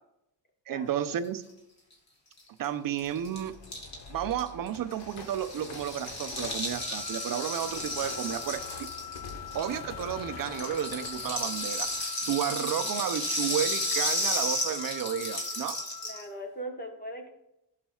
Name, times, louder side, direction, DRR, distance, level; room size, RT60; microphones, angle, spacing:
voice 1, 0.7-1.4 2.6-3.5 4.1-8.9 9.5-15.8, right 10 dB, 50° right, 11 dB, 0.6 m, -32 dB
Rattle (instrument), 2.4-2.5 2.6-2.7 2.9-10.1 10.4-16.2, left 1 dB, 35° left, 2.1 m, -33 dB
sound 1, 3.0-12.0, left 4 dB, 75° left, 1.3 m, -46 dB
sound 2, 6.8-16.4, left 10 dB, 55° left, 0.7 m, -44 dB
voice 2, 16.0-17.3, equal, 20° left, 3 dB, 1.3 m, -39 dB
11.5 x 6.7 x 2.4 m, 0.86 s
cardioid pair, 95°, 44 cm